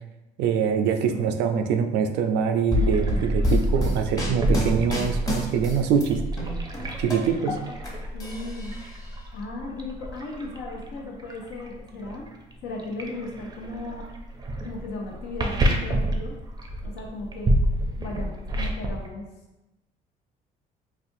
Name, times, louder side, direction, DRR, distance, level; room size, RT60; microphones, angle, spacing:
voice 1, 0.4-6.2 7.0-7.5, right 7 dB, 85° right, 6 dB, 0.4 m, -24 dB
voice 2, 1.1-1.8 7.4-7.6 7.8-8.8 9.3-12.3 12.6-14.1 14.6-16.3 16.8-17.6 18.0-19.3, left 2 dB, 90° left, -1 dB, 0.8 m, -36 dB
sound 1, 2.7-6.0 6.4-7.9 8.2-9.1, left 2 dB, 20° left, 0.9 m, -28 dB
sound 2, 2.7-19.1, right 1 dB, 25° right, 0.5 m, -29 dB
4.2 x 2.4 x 2.6 m, 0.98 s
cardioid pair, 110°, 17 cm